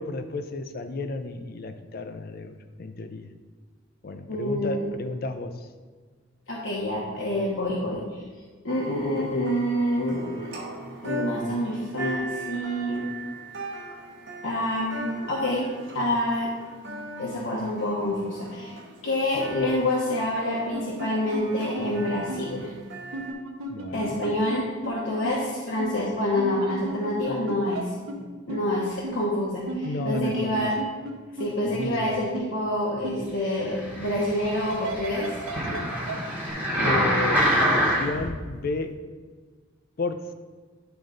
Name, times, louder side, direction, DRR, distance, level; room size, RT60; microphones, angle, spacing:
voice 1, 0.0-3.3 4.0-5.6 23.7-24.2 29.8-30.7 31.7-32.1 33.2-33.4 35.7-36.0 36.8-39.0 40.0-40.2, left 3 dB, 45° left, 9 dB, 0.4 m, -33 dB
voice 2, 4.3-5.0 6.5-8.2 8.6-10.7 11.0-13.1 14.4-15.7 15.9-16.5 17.2-18.7 19.0-22.7 23.9-27.9 28.2-30.8 31.3-35.4 36.6-37.2, left 1 dB, 65° left, -4 dB, 1.0 m, -27 dB
sound 1, 8.7-23.3, right 1 dB, 55° right, 1.0 m, -39 dB
sound 2, 20.7-21.1 21.3-21.4 21.7-21.9 22.3-22.4 23.1-24.6 24.8-24.9 25.2-25.4 25.8-25.9 26.4-27.8 28.1-28.2 28.5-28.6 29.0-29.1 29.7-31.1 31.4-31.5 31.8-31.9 32.3-32.4 33.0-33.1 34.7-35.8 36.1-36.2 36.5-36.6, right 2 dB, 90° right, 1.0 m, -33 dB
sound 3, 33.7-38.3 38.9-39.0, equal, 10° right, 1.2 m, -26 dB
10.0 x 3.9 x 3.8 m, 1.5 s
head